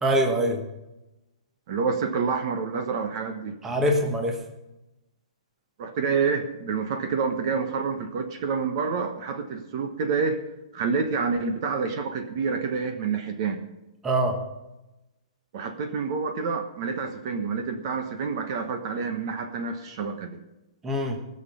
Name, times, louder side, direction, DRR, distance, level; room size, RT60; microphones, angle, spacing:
voice 1, 0.0-0.6 3.6-4.4 14.0-14.4 20.8-21.2, right 1 dB, 10° right, 3 dB, 1.2 m, -23 dB
voice 2, 1.7-3.5 5.8-10.4 10.7-13.6 15.5-20.4, right 5 dB, 40° right, 7 dB, 1.1 m, -28 dB
19.5 x 6.6 x 5.5 m, 0.98 s
hypercardioid pair, 165°, 4 cm